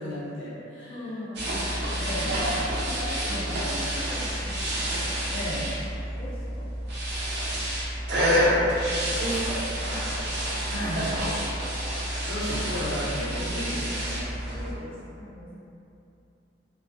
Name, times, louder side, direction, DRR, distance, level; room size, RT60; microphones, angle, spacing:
voice 1, 0.0-0.9 2.0-2.4 3.2-3.6 5.3-5.7 9.2-9.6 10.7-11.1 12.2-14.3, equal, 85° left, -8 dB, 0.7 m, -33 dB
voice 2, 0.9-2.1 2.6-4.8 6.1-6.7 9.9-10.1 10.5-10.9 14.5-15.5, left 1 dB, 30° left, -10 dB, 0.5 m, -41 dB
sound 1, 1.4-14.7, equal, 65° right, 0.6 m, -28 dB
2.4 x 2.4 x 2.3 m, 2.7 s
head